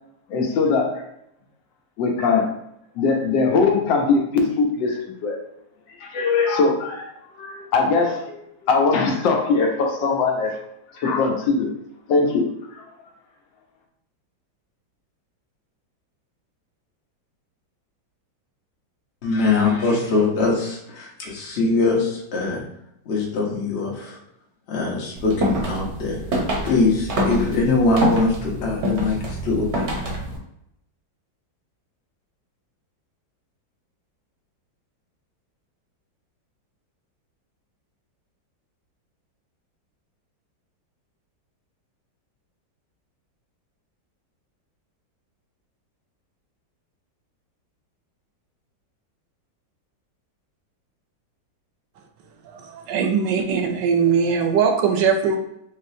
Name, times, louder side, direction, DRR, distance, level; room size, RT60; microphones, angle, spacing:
voice 1, 0.3-1.0 2.0-2.6 2.9-5.4 6.0-7.1 7.4-10.6 10.9-11.7 12.1-12.8, left 4 dB, 75° left, 2 dB, 1.4 m, -21 dB
voice 2, 19.2-22.6 23.1-24.2 24.7-26.2 26.6-29.9, left 3 dB, 45° left, -2 dB, 1.0 m, -22 dB
sound 1, 25.2-30.4, equal, 50° right, 0.9 m, -26 dB
voice 3, 52.4-55.4, right 6 dB, 75° right, 5 dB, 1.2 m, -20 dB
4.0 x 3.6 x 2.7 m, 0.77 s
omnidirectional pair, 2.0 m